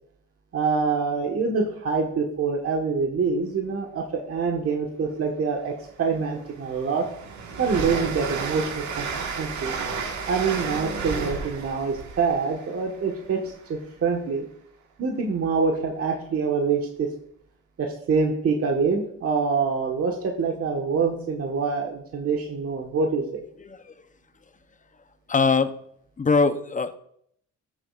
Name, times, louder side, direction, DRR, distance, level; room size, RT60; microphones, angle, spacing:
voice 1, 0.5-7.0 7.6-9.0 9.4-9.7 10.3-14.5 15.0-17.1 17.8-23.4, right 5 dB, 50° right, 1 dB, 1.4 m, -25 dB
Train, 5.5-5.6 6.1-13.8, right 5 dB, 70° right, 1.7 m, -33 dB
voice 2, 23.6-23.9 25.3-25.8 26.2-27.0, left 4 dB, 25° left, 11 dB, 0.7 m, -22 dB
13.0 x 7.4 x 2.5 m, 0.66 s
cardioid pair, 90°, 30 cm